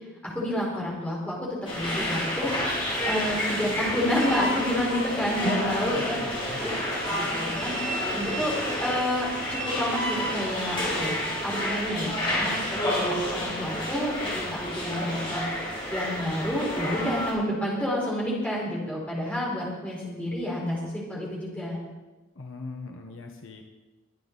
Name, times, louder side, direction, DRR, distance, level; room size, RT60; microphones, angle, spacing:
voice 1, 0.2-1.5 1.7-2.5 3.0-6.2 6.6-6.7 7.1-7.8 8.1-14.1 14.5-15.5 15.9-21.8, equal, 5° left, -5 dB, 4.3 m, -29 dB
sound 1, 1.6-17.3, left 1 dB, 25° left, 5.0 m, -29 dB
voice 2, 5.4-6.8 22.3-23.6, left 1 dB, 65° left, 3 dB, 1.2 m, -35 dB
23.0 x 9.3 x 4.0 m, 1.1 s
head